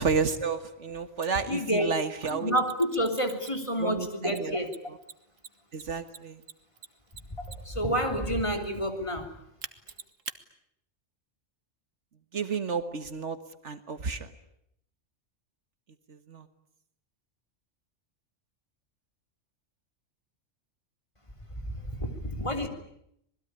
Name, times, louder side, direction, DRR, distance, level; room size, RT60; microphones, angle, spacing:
voice 1, 0.0-2.6 3.8-4.6 5.7-6.4 12.3-13.4 13.6-14.3 16.1-16.5, right 5 dB, 70° right, 11 dB, 1.8 m, -31 dB
Mechanisms, 1.2-1.3 2.2-3.8 4.3-7.8 9.6-10.4, right 6 dB, 90° right, 1.7 m, -44 dB
voice 2, 1.5-1.9 2.4-4.7 7.4-9.3 21.6-22.7, equal, 25° left, 5 dB, 3.5 m, -29 dB
26.5 x 20.5 x 9.9 m, 0.75 s
omnidirectional pair, 1.3 m